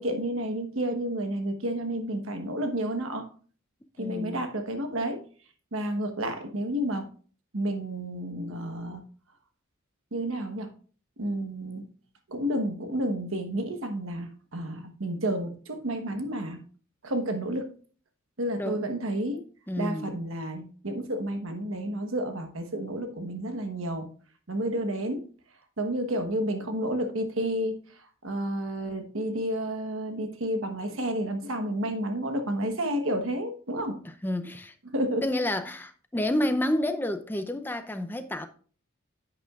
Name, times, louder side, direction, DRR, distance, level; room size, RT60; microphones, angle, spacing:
voice 1, 0.0-3.3 4.0-5.2 5.7-7.1 7.5-9.0 10.1-10.7 11.2-11.8 12.3-16.6 17.0-17.7 18.4-19.4 19.8-24.1 24.5-25.2 25.8-27.8 28.2-34.0 34.9-35.3, right 1 dB, 75° right, 1.2 m, -30 dB
voice 2, 4.0-4.5 18.6-18.8 19.7-20.1 34.0-34.7 35.2-38.5, left 1 dB, 10° left, 0.6 m, -29 dB
10.0 x 8.4 x 2.4 m
head